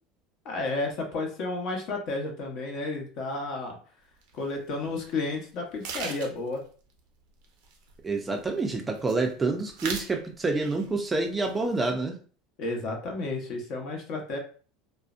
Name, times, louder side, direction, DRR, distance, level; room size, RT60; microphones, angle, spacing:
voice 1, 0.4-3.8 4.3-6.6 12.6-14.4, left 2 dB, 55° left, 2 dB, 0.8 m, -32 dB
sound 1, 4.2-4.3 4.9-5.1 5.4-5.5 5.8-6.6 7.4-8.4 8.7-9.3 9.6-10.2 10.5-11.0 11.2-11.9, right 5 dB, 75° right, 0.6 m, -38 dB
voice 2, 8.0-12.2, right 3 dB, 15° right, 4 dB, 0.4 m, -28 dB
2.4 x 2.1 x 2.4 m, 0.40 s
supercardioid pair, 110°, 0 cm